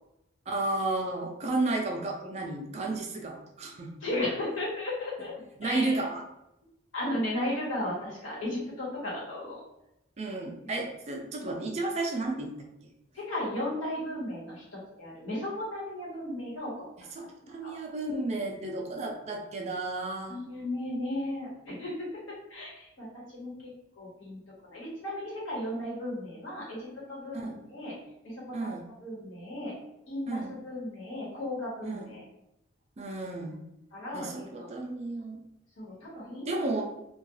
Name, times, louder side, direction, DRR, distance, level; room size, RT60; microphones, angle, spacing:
voice 1, 0.5-3.9 5.6-6.2 10.2-12.5 17.2-20.4 27.3-27.6 28.5-28.8 30.3-30.6 31.8-32.1 33.0-33.6 34.1-35.4 36.5-36.8, right 2 dB, 35° right, 1 dB, 0.3 m, -32 dB
voice 2, 4.0-5.3 5.6-6.1 6.9-9.6 13.1-17.1 17.4-17.8 20.3-21.9 22.3-23.7 24.0-24.4 24.7-27.9 28.2-28.3 28.6-28.7 29.0-29.7 30.1-32.2 33.9-34.7 35.8-36.6, left 1 dB, 80° left, -6 dB, 1.2 m, -35 dB
2.3 x 2.3 x 2.9 m, 0.87 s
head